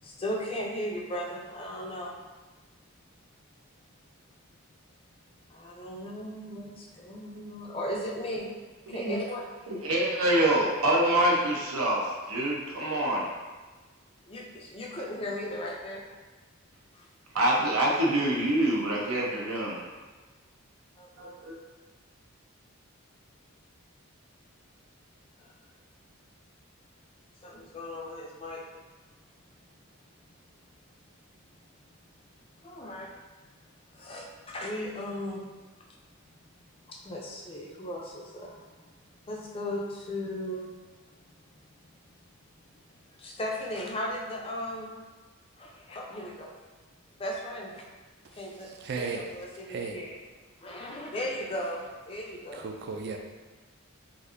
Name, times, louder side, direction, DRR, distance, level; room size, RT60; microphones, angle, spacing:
voice 1, 0.0-2.2 5.5-8.5 8.9-9.4 14.3-16.0 16.9-17.0 21.0-21.3 25.4-25.5 27.4-28.6 32.6-33.1 33.9-35.4 36.9-38.9 39.3-40.7 43.2-45.0 45.6-46.5 47.2-47.9 48.3-48.7 49.0-50.2 50.6-52.7, left 1 dB, 25° left, -1 dB, 0.4 m, -36 dB
voice 2, 9.7-13.3 17.3-19.8 21.2-21.6, right 1 dB, 80° right, -3 dB, 0.7 m, -26 dB
voice 3, 48.6-49.3 49.7-50.0 52.5-53.2, right 4 dB, 50° right, 3 dB, 0.4 m, -35 dB
4.0 x 2.5 x 2.5 m, 1.3 s
head